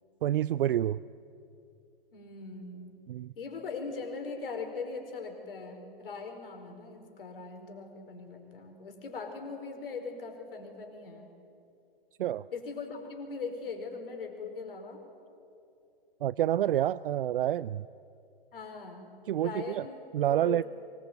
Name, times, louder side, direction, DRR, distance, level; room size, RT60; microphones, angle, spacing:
voice 1, 0.2-1.0 3.1-3.3 12.2-12.4 16.2-17.9 19.3-19.9 20.1-20.6, right 12 dB, 65° right, 19 dB, 0.5 m, -28 dB
voice 2, 2.1-2.9 3.4-11.3 12.5-15.0 18.5-19.1 19.3-20.0 20.3-20.6, left 4 dB, 65° left, 4 dB, 4.8 m, -40 dB
23.5 x 20.5 x 9.1 m, 2.6 s
hypercardioid pair, 120°, 30 cm